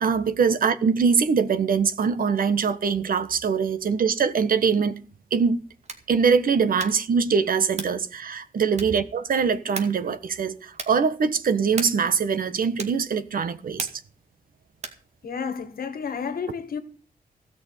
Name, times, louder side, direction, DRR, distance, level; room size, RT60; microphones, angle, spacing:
voice 1, 0.0-5.0 5.3-5.6 6.1-13.9, right 6 dB, 70° right, 1.3 m, -23 dB
sound 1, 5.8-6.2 6.7-7.1 7.7-8.1 8.7-9.1 9.7-10.1 10.7-11.1 11.7-12.1 12.8-13.1 13.8-14.2 14.8-15.1, right 4 dB, 45° right, 2.3 m, -37 dB
voice 2, 15.2-16.8, left 6 dB, 75° left, 2.0 m, -31 dB
16.5 x 6.2 x 9.3 m
wide cardioid pair, 170°, 15 cm